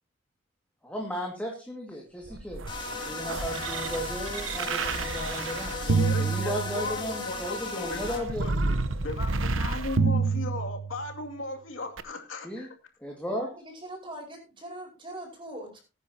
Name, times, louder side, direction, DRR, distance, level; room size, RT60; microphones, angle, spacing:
voice 1, 0.8-2.6 3.1-5.7 6.2-8.7 12.4-12.7 13.0-13.5, equal, 5° left, -1 dB, 2.1 m, -35 dB
sound 1, 2.3-7.2 7.9-11.2 12.0-12.1, right 4 dB, 80° right, 1.0 m, -29 dB
sound 2, 2.7-8.2, left 3 dB, 25° left, 3.3 m, -36 dB
voice 2, 5.8-12.7, left 3 dB, 80° left, 2 dB, 2.5 m, -37 dB
voice 3, 13.2-15.8, right 1 dB, 25° right, 2 dB, 5.0 m, -42 dB
20.0 x 9.7 x 2.9 m, 0.30 s
head